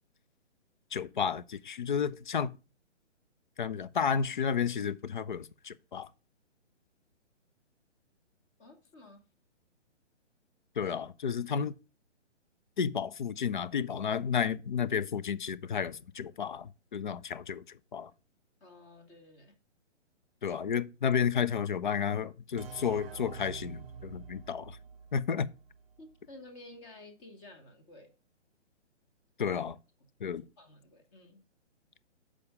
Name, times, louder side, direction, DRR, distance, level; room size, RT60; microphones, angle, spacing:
voice 1, 0.9-2.5 3.6-6.1 10.8-11.7 12.8-17.6 17.9-18.1 20.4-24.8 25.1-25.5 29.4-29.8 30.2-30.5, left 7 dB, 45° left, 0.4 m, -32 dB
voice 2, 8.6-9.2 18.6-19.6 26.0-28.1 30.6-31.4, left 2 dB, 25° left, 1.4 m, -52 dB
sound 1, 22.6-26.1, right 6 dB, 50° right, 0.6 m, -47 dB
6.8 x 4.9 x 5.4 m
hypercardioid pair, 145°, 37 cm